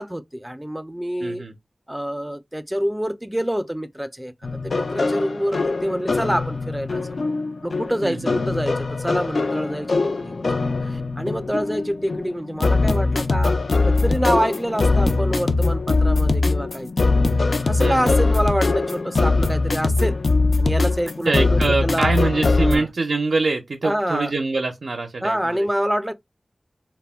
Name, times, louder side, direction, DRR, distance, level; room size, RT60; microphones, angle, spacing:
voice 1, 0.0-1.4 1.9-4.3 4.6-7.2 7.6-10.4 10.8-13.6 13.8-17.2 17.7-20.2 20.6-22.2 22.6-22.9 23.8-24.3 25.2-26.1, equal, 10° right, 0.3 m, -26 dB
voice 2, 1.2-1.5 8.0-8.4 17.8-18.3 21.3-25.7, right 3 dB, 90° right, 0.4 m, -24 dB
sound 1, 4.4-22.8, left 3 dB, 80° left, 0.3 m, -21 dB
2.1 x 2.1 x 3.3 m
wide cardioid pair, 75°, 0 cm